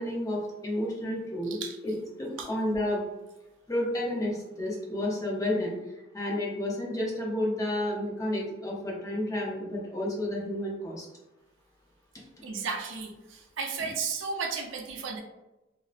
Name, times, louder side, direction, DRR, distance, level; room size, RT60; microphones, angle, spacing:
voice 1, 0.0-1.6 1.8-1.9 2.2-3.0 3.7-5.7 6.1-11.1, left 1 dB, 15° left, -3 dB, 0.5 m, -31 dB
voice 2, 1.4-1.8 2.4-2.5 12.4-15.2, right 5 dB, 70° right, 3 dB, 0.4 m, -34 dB
2.6 x 2.0 x 2.4 m, 1.0 s
head